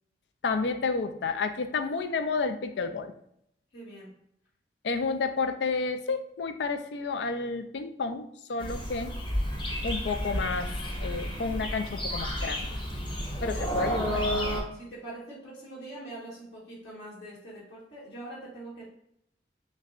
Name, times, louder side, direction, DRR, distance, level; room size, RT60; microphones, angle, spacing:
voice 1, 0.4-3.1 4.8-9.1 9.8-12.7 13.4-14.2, left 4 dB, 70° left, 8 dB, 0.4 m, -31 dB
voice 2, 3.7-4.1 13.4-13.7 14.7-18.8, right 2 dB, 90° left, -9 dB, 1.4 m, -43 dB
sound 1, 8.6-14.6, equal, 25° left, 0.7 m, -31 dB
6.3 x 2.2 x 2.5 m, 0.75 s
head